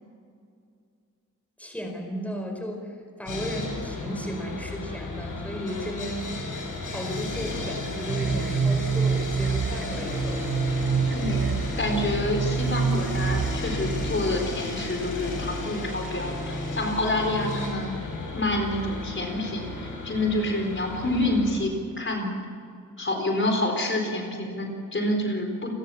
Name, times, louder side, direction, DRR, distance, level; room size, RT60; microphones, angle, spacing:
voice 1, 1.6-6.3 6.8-11.0, equal, 5° left, 3 dB, 4.5 m, -35 dB
Sawing, 3.3-21.5, left 2 dB, 80° left, 7.0 m, -33 dB
sound 1, 8.1-14.2, right 6 dB, 35° right, 0.5 m, -27 dB
voice 2, 11.1-18.1 18.3-21.7 22.0-22.3 23.0-25.7, left 1 dB, 40° left, 3 dB, 4.2 m, -28 dB
29.5 x 20.0 x 7.1 m, 2.3 s
wide cardioid pair, 140°, 31 cm